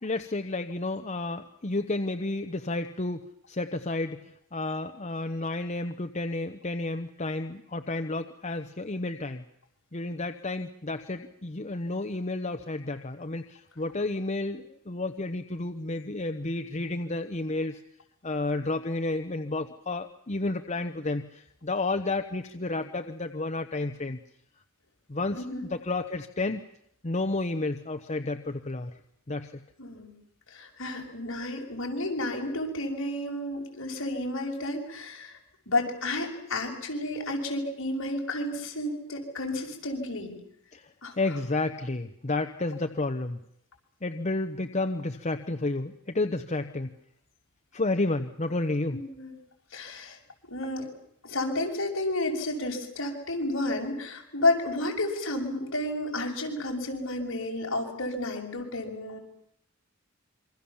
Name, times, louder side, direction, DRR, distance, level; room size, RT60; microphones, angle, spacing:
voice 1, 0.0-9.4 9.9-17.8 18.2-24.2 25.1-25.4 25.7-26.6 27.0-28.9 29.3-29.6 40.7-40.9 41.2-43.4 44.0-46.9 47.7-49.0, left 2 dB, 35° left, 6 dB, 1.0 m, -31 dB
voice 2, 25.3-25.6 29.8-30.1 30.5-35.4 35.7-40.4 41.0-41.1 48.9-49.3 49.7-50.2 50.4-50.9 51.2-59.2, left 2 dB, 65° left, 1 dB, 6.4 m, -31 dB
27.0 x 24.5 x 7.2 m, 0.72 s
head